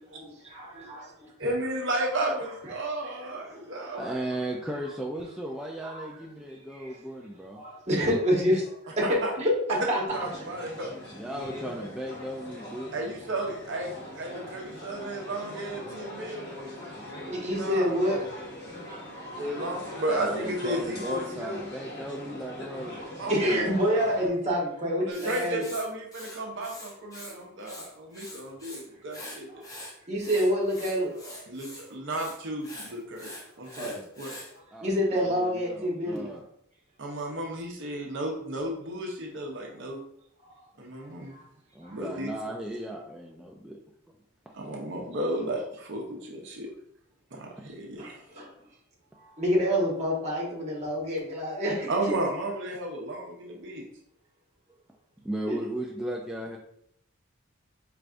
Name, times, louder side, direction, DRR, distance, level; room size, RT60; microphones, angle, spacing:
voice 1, 0.0-1.3 3.5-4.1 5.8-6.1 6.7-6.9 7.6-10.0 17.3-18.2 18.8-19.0 19.3-19.4 19.9-20.0 22.9-23.0 23.3-25.6 29.5-29.6 30.1-31.4 33.7-34.0 34.8-36.3 41.3-41.4 41.8-42.0 48.0-48.5 49.2-51.9 55.5-55.6, equal, 35° right, -4 dB, 1.4 m, -28 dB
voice 2, 1.4-4.2 9.0-9.3 9.9-10.9 12.9-16.5 17.5-18.0 19.3-21.6 23.2-23.7 25.0-29.6 31.5-33.3 33.6-33.9 34.2-34.3 37.0-40.0 40.8-41.4 41.9-42.3 44.5-46.7 47.3-48.2 51.9-53.9, right 1 dB, 65° right, 0 dB, 0.8 m, -33 dB
voice 3, 4.0-7.6 11.1-12.9 20.1-23.0 34.7-36.4 41.7-43.8 55.2-56.6, right 1 dB, 5° right, -2 dB, 0.3 m, -36 dB
sound 1, 10.1-24.3, left 1 dB, 55° left, 1.2 m, -41 dB
Writing, 25.1-27.3 27.6-28.8 29.1-34.5, left 1 dB, 15° left, 0.8 m, -44 dB
4.6 x 3.3 x 2.5 m, 0.70 s
head